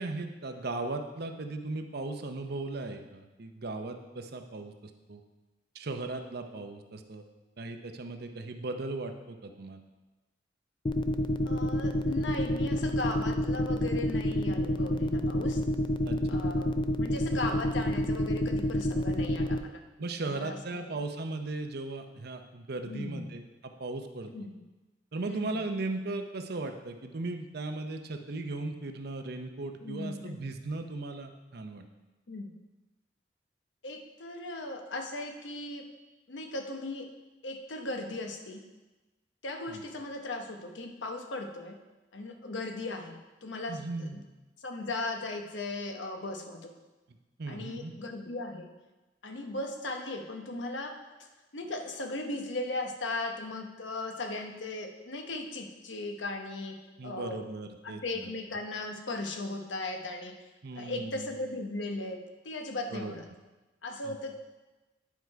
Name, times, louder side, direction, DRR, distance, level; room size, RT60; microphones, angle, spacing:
voice 1, 0.0-5.2 5.7-7.2 7.6-9.8 16.0-16.4 20.0-24.3 25.1-31.9 39.7-39.8 43.7-44.2 47.4-47.9 57.0-58.3 60.6-61.2 62.9-63.2 64.0-64.1, right 2 dB, 60° right, 6 dB, 0.7 m, -37 dB
sound 1, 10.9-19.6, left 1 dB, 25° left, 0.4 m, -28 dB
voice 2, 11.4-15.6 16.3-19.8 20.2-20.9 22.8-23.3 24.3-24.6 25.3-25.6 29.8-30.4 32.3-32.6 33.8-35.9 36.3-37.1 37.4-38.6 39.4-41.8 42.1-44.2 44.6-46.7 47.5-48.7 49.2-51.3 51.5-57.4 57.8-60.3 60.7-63.3 63.8-64.4, left 2 dB, 90° left, 4 dB, 1.0 m, -37 dB
10.0 x 4.8 x 4.7 m, 1.1 s
head